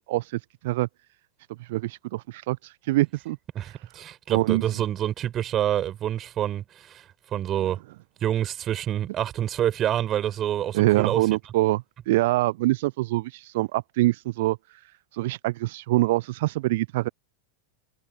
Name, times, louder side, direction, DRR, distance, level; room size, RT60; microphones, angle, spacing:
voice 1, 0.1-0.9 1.6-3.4 3.6-3.8 4.3-4.6 10.7-17.1, right 18 dB, 50° right, 0.8 m, -25 dB
voice 2, 3.5-7.8 8.2-11.2, right 11 dB, 30° right, 6.9 m, -27 dB
figure-of-eight pair, 90°, 0 cm